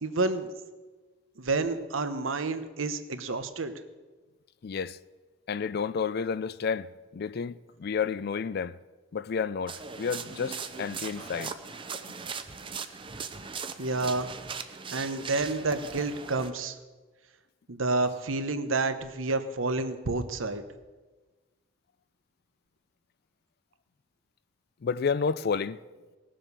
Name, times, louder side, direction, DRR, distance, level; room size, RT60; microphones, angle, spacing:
voice 1, 0.0-0.5 1.4-3.7 11.2-11.3 13.8-14.3 14.9-16.8 17.7-20.6, right 3 dB, 85° right, 1.0 m, -29 dB
voice 2, 4.6-5.0 5.5-8.8 9.1-11.6 24.8-25.8, left 6 dB, 50° left, 0.4 m, -31 dB
sound 1, 9.7-16.5, right 5 dB, 25° right, 0.7 m, -39 dB
18.5 x 7.5 x 6.8 m
head